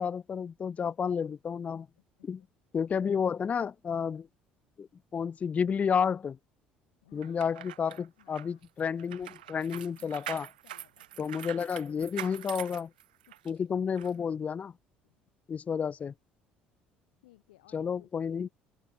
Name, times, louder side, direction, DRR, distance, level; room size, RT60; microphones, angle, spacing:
voice 1, 0.0-1.9 2.2-2.4 2.7-4.3 4.8-4.9 5.1-6.4 7.1-10.5 11.2-12.9 13.5-14.7 15.5-16.1 17.7-18.5, left 7 dB, 30° left, 0.3 m, -31 dB
voice 2, 7.0-7.7 8.2-9.6 10.0-10.4 10.6-11.5 13.3-13.8 15.0-15.2 17.2-18.5, left 17 dB, 75° left, 6.1 m, -62 dB
sound 1, 7.2-13.5 14.0-14.1, right 13 dB, 75° right, 0.9 m, -44 dB
open air
figure-of-eight pair, 55°, 5 cm